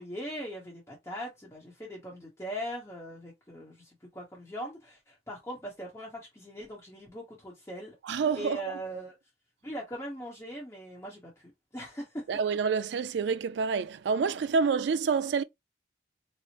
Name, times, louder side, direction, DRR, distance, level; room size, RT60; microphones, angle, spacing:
voice 1, 0.0-8.0 8.3-9.1 9.6-12.2, equal, 15° left, 0.8 m, -40 dB
voice 2, 8.0-8.8 12.3-15.4, right 5 dB, 70° right, 0.3 m, -28 dB
4.3 x 2.0 x 2.8 m
head